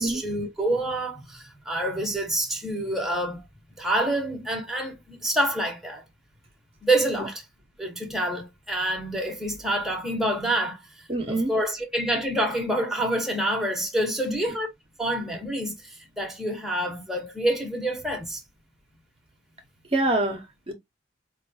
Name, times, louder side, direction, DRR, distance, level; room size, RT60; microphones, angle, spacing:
voice 1, 0.0-3.4 3.8-6.0 6.8-7.4 7.8-14.7 15.0-18.4, right 1 dB, ahead, 0.9 m, -27 dB
voice 2, 11.1-11.5 19.9-20.7, right 2 dB, 35° right, 0.8 m, -26 dB
4.7 x 2.3 x 2.6 m
head